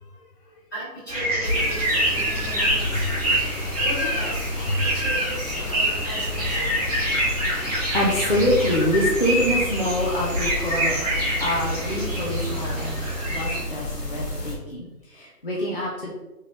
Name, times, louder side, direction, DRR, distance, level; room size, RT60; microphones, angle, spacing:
voice 1, 0.7-3.1 3.8-4.5 4.8-6.7, equal, 15° left, -15 dB, 1.2 m, -36 dB
sound 1, 1.1-13.6, right 1 dB, 25° right, 0.8 m, -26 dB
sound 2, 1.4-14.6, left 2 dB, 80° left, 1.1 m, -32 dB
voice 2, 7.8-11.0 11.4-13.0 13.3-16.1, equal, 40° left, -4 dB, 0.4 m, -25 dB
3.5 x 3.0 x 2.9 m, 1.1 s
figure-of-eight pair, 145°, 47 cm